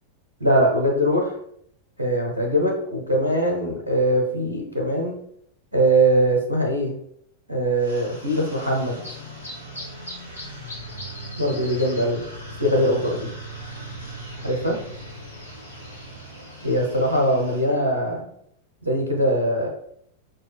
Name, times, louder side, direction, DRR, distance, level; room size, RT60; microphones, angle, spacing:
voice 1, 0.4-1.3 2.0-5.2 5.7-6.9 7.5-9.0 11.4-12.2 12.6-13.3 14.4-14.8 16.6-18.3 18.8-19.7, right 1 dB, 80° right, -1 dB, 0.9 m, -21 dB
sound 1, 7.8-17.7, right 1 dB, 80° left, 1.0 m, -38 dB
6.0 x 2.3 x 3.3 m, 0.71 s
figure-of-eight pair, 90°, 0 cm